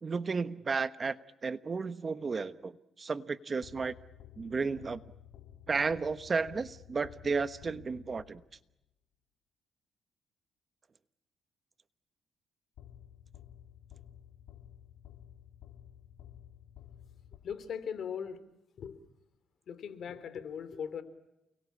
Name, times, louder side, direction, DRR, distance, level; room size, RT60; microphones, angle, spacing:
voice 1, 0.0-3.9 4.4-5.0 5.7-8.4, right 4 dB, 35° right, 1.1 m, -33 dB
sound 1, 3.6-8.7 12.8-18.0, left 10 dB, 90° left, 2.3 m, -53 dB
voice 2, 17.4-18.4 18.8-19.0 19.7-21.0, left 7 dB, 60° left, 3.2 m, -39 dB
29.5 x 22.0 x 8.5 m
cardioid pair, 90°, 0 cm